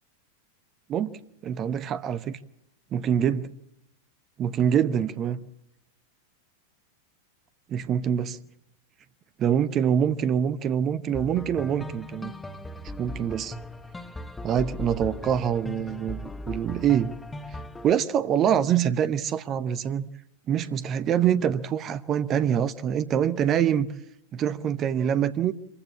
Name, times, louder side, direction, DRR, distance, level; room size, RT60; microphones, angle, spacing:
voice 1, 0.9-2.4 2.9-3.5 4.4-5.5 7.7-8.4 9.4-12.3 13.0-13.5 14.4-16.2 16.5-17.1 17.8-20.1 20.5-23.9 24.3-25.5, right 9 dB, 30° right, 0.8 m, -25 dB
sound 1, 11.1-17.9, left 2 dB, 10° left, 1.3 m, -38 dB
25.5 x 15.5 x 8.5 m
figure-of-eight pair, 90°, 0 cm